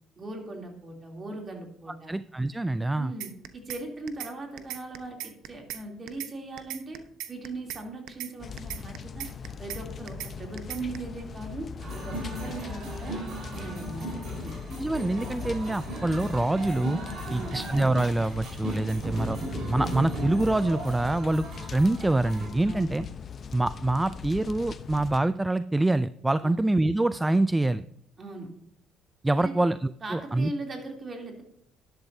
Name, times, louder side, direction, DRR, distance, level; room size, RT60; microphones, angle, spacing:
voice 1, 0.2-2.2 2.9-7.0 7.3-9.3 9.6-13.2 13.5-14.5 17.2-17.6 22.7-23.0 26.4-26.6 28.2-28.5 29.4-29.5 30.0-31.4, right 2 dB, 35° right, 1 dB, 3.1 m, -39 dB
voice 2, 2.1-3.1 14.8-17.0 17.3-19.4 19.7-21.5 21.7-23.1 23.5-27.8 29.2-30.5, right 2 dB, 10° right, 14 dB, 0.3 m, -25 dB
sound 1, 3.2-3.8 4.1-4.3 4.6-5.8 6.1-6.3 6.6-7.8 8.1-8.3 8.6-9.8 10.1-10.3 10.6-11.0, right 12 dB, 80° right, 0.9 m, -37 dB
sound 2, 8.4-25.2, left 7 dB, 45° left, 0.8 m, -40 dB
sound 3, 11.8-22.5, right 1 dB, 55° right, 4.6 m, -37 dB
11.5 x 11.5 x 2.7 m, 0.72 s
cardioid pair, 95°, 0 cm